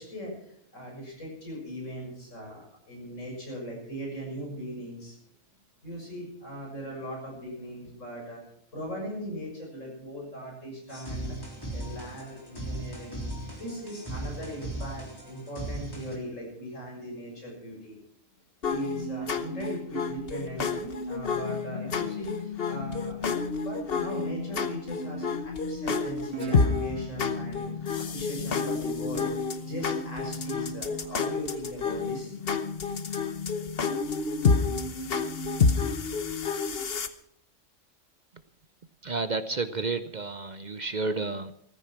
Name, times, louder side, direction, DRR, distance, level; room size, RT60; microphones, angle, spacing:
voice 1, 0.0-5.2 5.8-8.4 8.7-11.4 11.7-13.2 13.5-18.0 18.7-23.2 23.6-27.7 28.1-29.3 29.6-32.3, equal, 90° left, -1 dB, 7.3 m, -39 dB
sound 1, 10.9-16.1, right 1 dB, 20° left, 3.6 m, -38 dB
sound 2, 18.6-37.1, left 5 dB, 55° left, 1.2 m, -29 dB
Guitar, 26.3-29.6, right 6 dB, 75° right, 2.0 m, -41 dB
voice 2, 39.0-41.5, right 3 dB, 45° right, 12 dB, 0.8 m, -31 dB
14.5 x 14.0 x 6.0 m, 0.67 s
omnidirectional pair, 1.3 m